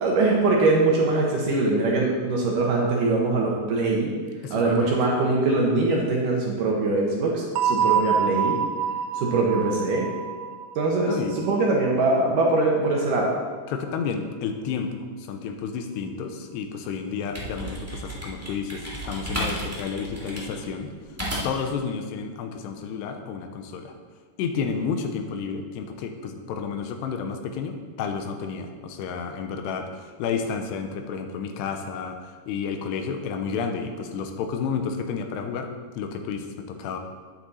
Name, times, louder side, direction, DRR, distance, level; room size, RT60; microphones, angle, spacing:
voice 1, 0.0-4.1 4.5-8.6 9.2-10.1 10.8-13.3, right 3 dB, 65° right, -2 dB, 2.2 m, -22 dB
voice 2, 4.4-4.9 11.1-11.4 13.7-14.9 15.2-20.9 21.4-23.9 24.4-37.0, left 6 dB, 85° left, 5 dB, 2.8 m, -31 dB
sound 1, 7.6-12.2, right 7 dB, 80° right, 2.5 m, -27 dB
sound 2, 17.0-21.7, equal, 15° right, 0.5 m, -33 dB
9.9 x 9.4 x 4.1 m, 1.5 s
omnidirectional pair, 4.8 m